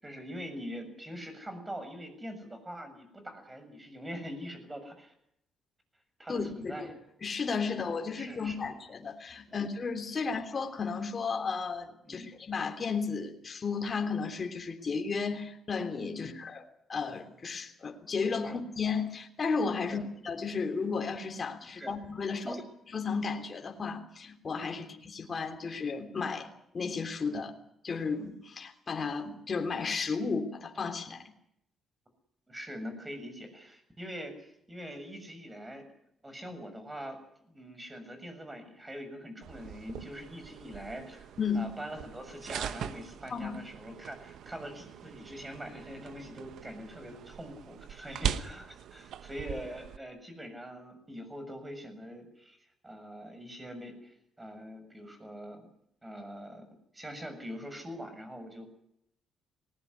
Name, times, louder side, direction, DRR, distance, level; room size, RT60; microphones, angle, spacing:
voice 1, 0.0-5.1 6.2-7.0 8.1-8.6 9.5-9.6 10.2-10.4 12.0-12.3 16.1-16.4 18.4-18.6 19.9-20.1 21.7-22.0 22.2-22.6 24.7-24.9 32.5-35.9 36.2-37.2 37.4-41.3 41.5-52.6 52.8-55.6 56.0-56.6 56.9-58.7, equal, 15° right, 8 dB, 7.1 m, -43 dB
voice 2, 6.3-6.7 7.2-16.6 16.9-22.6 22.9-26.5 26.7-27.5 27.8-31.2 41.4-41.7 43.3-43.6, left 5 dB, 40° left, 4 dB, 3.4 m, -33 dB
sound 1, 39.4-50.0, right 9 dB, 75° right, 1.1 m, -41 dB
20.0 x 19.0 x 9.8 m, 0.75 s
cardioid pair, 90°, 0 cm